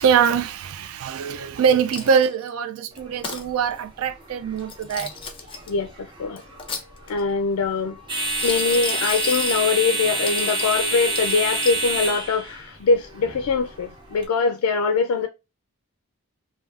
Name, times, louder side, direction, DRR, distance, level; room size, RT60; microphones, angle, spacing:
voice 1, 0.0-5.1 10.4-10.5, right 7 dB, 75° right, 0.4 m, -23 dB
Coin (dropping), 1.9-2.5 3.0-3.4 4.6-5.7 6.4-7.3 8.2-9.7 10.3-10.8 11.2-11.8, left 5 dB, 25° left, 0.4 m, -34 dB
sound 1, 2.9-14.3, right 2 dB, 20° right, 0.7 m, -29 dB
voice 2, 5.7-6.4 7.1-8.0 8.4-15.3, left 4 dB, 85° left, 0.4 m, -23 dB
3.3 x 2.2 x 2.4 m
head